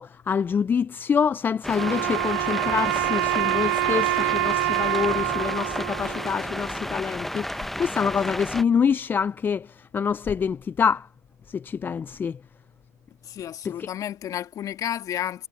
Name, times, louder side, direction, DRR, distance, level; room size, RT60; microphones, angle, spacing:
voice 1, 0.0-11.1 11.5-12.4 13.6-13.9, left 6 dB, 20° left, 0.5 m, -26 dB
sound 1, 1.6-8.6, left 1 dB, ahead, 1.0 m, -32 dB
Wind instrument woodwind instrument, 1.7-6.9, right 19 dB, 65° right, 1.5 m, -26 dB
voice 2, 13.2-15.5, left 10 dB, 35° left, 1.8 m, -31 dB
hypercardioid pair, 90°, 10 cm